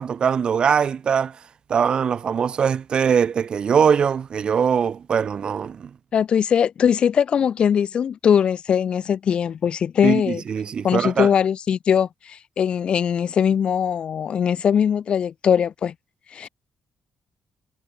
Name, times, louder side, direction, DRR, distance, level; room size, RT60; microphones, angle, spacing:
voice 1, 0.0-1.4 1.7-5.9 10.0-11.3, right 7 dB, 50° right, 0.5 m, -21 dB
voice 2, 6.1-10.4 10.8-15.9 16.3-16.5, left 8 dB, 55° left, 2.7 m, -21 dB
cardioid pair, 105°, 2 cm